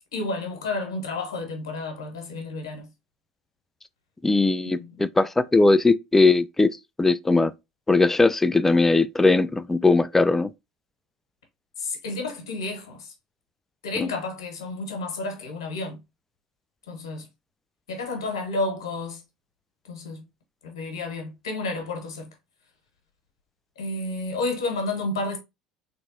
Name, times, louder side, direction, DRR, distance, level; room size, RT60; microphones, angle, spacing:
voice 1, 0.1-2.9 4.6-5.0 11.8-13.1 13.8-16.0 16.9-17.2 17.9-19.2 19.9-20.3 20.6-22.3 23.8-25.4, left 2 dB, 80° left, 1.1 m, -31 dB
voice 2, 4.2-7.5 7.9-10.5 14.0-14.1, left 3 dB, 10° left, 0.3 m, -20 dB
3.4 x 3.0 x 2.6 m
hypercardioid pair, 70°, 3 cm